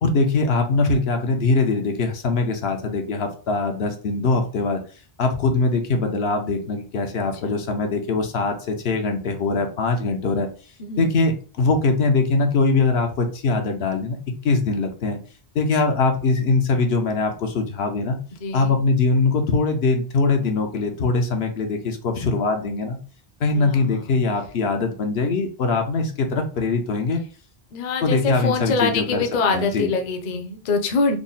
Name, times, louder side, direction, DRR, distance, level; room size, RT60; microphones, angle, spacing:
voice 1, 0.0-4.8 5.2-10.5 11.0-14.2 14.4-15.2 15.5-18.2 18.5-23.0 23.4-27.2 28.0-29.2 29.5-29.9, left 3 dB, 80° left, 4 dB, 1.0 m, -22 dB
voice 2, 10.8-11.3 18.4-18.8 23.5-24.0 27.7-31.2, left 4 dB, 50° left, 5 dB, 0.6 m, -24 dB
3.6 x 2.1 x 3.9 m, 0.38 s
omnidirectional pair, 1.0 m